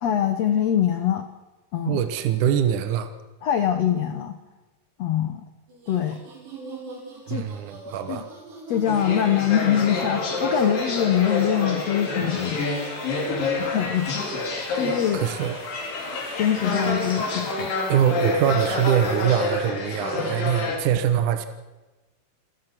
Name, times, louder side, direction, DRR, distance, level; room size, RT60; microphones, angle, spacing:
voice 1, 0.0-1.3 1.7-2.0 3.4-4.4 5.0-5.4 5.9-6.2 7.3-7.4 8.1-8.2 8.7-12.6 13.6-14.1 14.7-15.3 16.4-17.7, left 10 dB, 80° left, 8 dB, 1.4 m, -23 dB
voice 2, 1.9-3.1 7.3-8.3 15.1-15.6 17.9-21.5, right 9 dB, 65° right, 9 dB, 2.2 m, -23 dB
sound 1, 5.7-19.2, right 2 dB, 90° right, 7.5 m, -42 dB
sound 2, 8.9-20.8, left 2 dB, 60° left, 4.9 m, -28 dB
29.0 x 16.0 x 6.1 m, 1.1 s
omnidirectional pair, 4.6 m